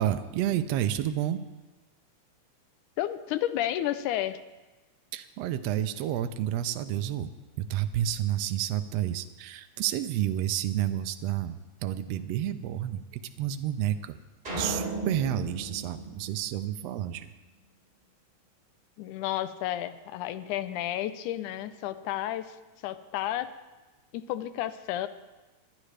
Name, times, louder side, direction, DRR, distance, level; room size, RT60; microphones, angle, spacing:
voice 1, 0.0-1.4 5.1-7.3 7.6-14.2 14.6-17.3, right 11 dB, 75° right, 9 dB, 1.6 m, -30 dB
voice 2, 3.0-4.4 19.0-22.6 22.8-23.5 24.1-25.1, left 13 dB, 85° left, 12 dB, 2.1 m, -31 dB
sound 1, 14.4-17.0, right 2 dB, 15° right, 3.2 m, -36 dB
20.5 x 10.5 x 3.3 m, 1.2 s
omnidirectional pair, 3.4 m